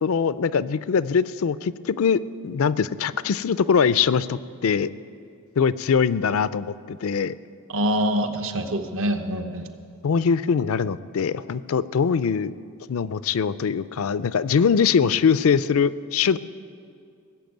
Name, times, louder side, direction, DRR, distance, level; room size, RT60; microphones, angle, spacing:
voice 1, 0.0-4.9 5.6-7.3 10.0-12.5 12.9-16.4, left 6 dB, 70° left, 17 dB, 0.4 m, -22 dB
voice 2, 7.7-9.7, equal, 65° right, 7 dB, 1.0 m, -25 dB
18.5 x 7.3 x 9.2 m, 2.3 s
head